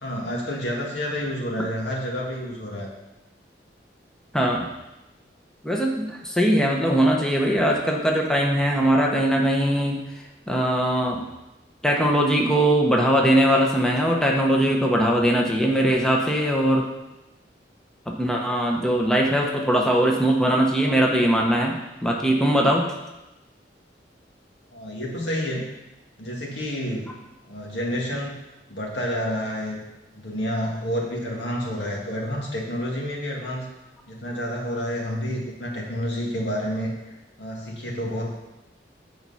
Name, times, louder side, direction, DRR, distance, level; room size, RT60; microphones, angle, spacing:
voice 1, 0.0-2.9 24.7-25.7 26.2-27.1 27.5-28.4 28.7-29.8 30.1-33.7 34.1-38.4, equal, 85° left, -2 dB, 2.0 m, -29 dB
voice 2, 4.3-4.7 5.6-10.0 10.5-11.2 11.8-16.8 18.1-22.9, right 1 dB, 5° left, -1 dB, 0.9 m, -21 dB
8.8 x 4.6 x 5.6 m, 0.99 s
head